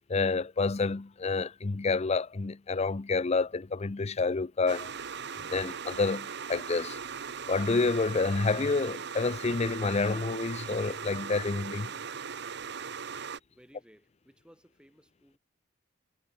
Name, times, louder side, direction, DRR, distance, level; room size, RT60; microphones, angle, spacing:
voice 1, 0.1-4.9 5.4-7.0 7.5-11.9, left 4 dB, 35° left, 0.5 m, -29 dB
sound 1, 4.7-13.4, right 6 dB, 60° right, 1.2 m, -39 dB
voice 2, 13.5-15.4, equal, 5° right, 3.6 m, -59 dB
head